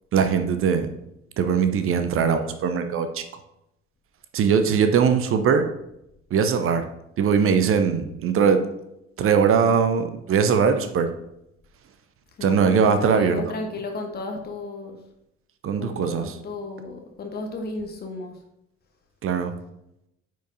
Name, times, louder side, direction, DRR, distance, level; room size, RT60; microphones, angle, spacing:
voice 1, 0.1-0.9 1.4-3.2 4.3-5.7 6.3-6.9 7.2-8.6 9.2-11.1 12.4-13.4 15.6-16.4 19.2-19.5, right 6 dB, 40° right, 8 dB, 0.7 m, -21 dB
voice 2, 12.4-15.0 15.8-18.3, left 3 dB, 25° left, 3 dB, 1.1 m, -34 dB
9.0 x 4.7 x 2.7 m, 0.83 s
figure-of-eight pair, 50°, 35 cm